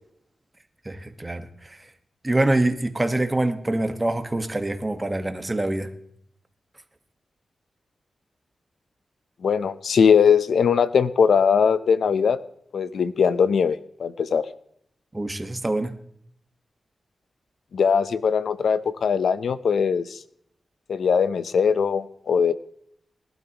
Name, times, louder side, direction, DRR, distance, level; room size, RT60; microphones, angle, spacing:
voice 1, 0.8-1.8 2.2-5.9 15.1-16.0, right 2 dB, 20° right, 8 dB, 1.4 m, -25 dB
voice 2, 9.4-12.4 12.7-14.5 17.7-20.2 20.9-22.5, left 6 dB, 85° left, 14 dB, 0.7 m, -20 dB
20.0 x 12.0 x 3.0 m, 0.69 s
wide cardioid pair, 85°, 0 cm